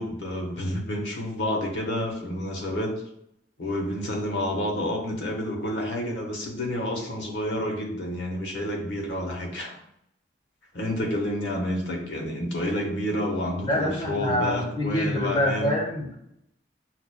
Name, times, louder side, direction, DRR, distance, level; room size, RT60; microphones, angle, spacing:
voice 1, 0.0-3.0 3.6-9.8 10.7-15.7, left 1 dB, 85° left, 1 dB, 0.8 m, -29 dB
voice 2, 13.6-16.1, left 1 dB, 40° left, -1 dB, 0.7 m, -26 dB
5.8 x 2.2 x 2.2 m, 0.77 s
head